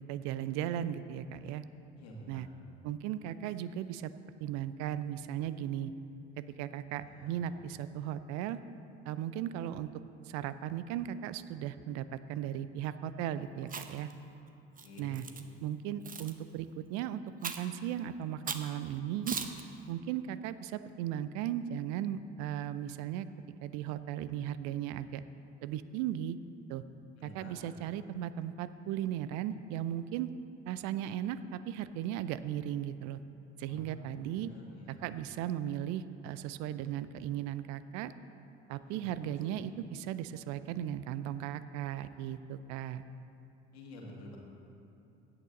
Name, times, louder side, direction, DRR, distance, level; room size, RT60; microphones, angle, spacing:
voice 1, 0.1-1.6 2.3-2.5 2.8-4.1 4.4-5.9 6.4-8.6 9.1-9.9 10.2-14.1 15.0-15.3 15.6-19.3 19.9-23.3 23.6-25.2 25.6-26.4 26.7-26.8 27.2-30.3 30.7-33.2 33.6-34.5 34.9-38.1 38.7-43.0, right 11 dB, 60° right, 14 dB, 0.6 m, -37 dB
voice 2, 2.0-2.4 7.1-7.4 14.8-15.2 27.2-27.5 33.7-34.0 34.3-35.0 38.9-39.6 43.7-44.4, left 1 dB, 75° left, -1 dB, 2.0 m, -50 dB
Chewing mastication, 13.6-14.1 14.8-15.4 16.0-16.3 17.4-17.8 18.5-18.7 19.3-19.6, right 6 dB, 25° right, 0.9 m, -38 dB
16.0 x 8.8 x 4.0 m, 2.7 s
figure-of-eight pair, 55°, 32 cm